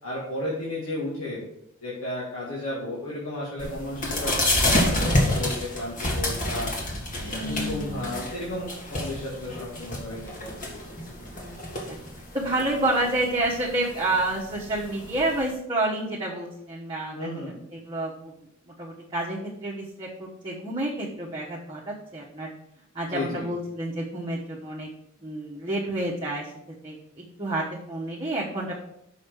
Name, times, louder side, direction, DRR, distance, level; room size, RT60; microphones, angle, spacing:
voice 1, 0.0-1.4 1.8-6.7 7.1-11.0 11.3-11.4 17.1-17.6 23.1-23.5, left 1 dB, 90° left, -7 dB, 2.3 m, -34 dB
sound 1, 3.6-15.5, left 1 dB, 40° left, 1.8 m, -29 dB
voice 2, 7.2-8.2 11.3-11.6 12.3-17.2 17.7-18.3 18.8-22.5 22.9-24.9 25.2-28.8, right 1 dB, 25° right, -5 dB, 1.2 m, -29 dB
6.5 x 5.3 x 6.2 m, 0.78 s
head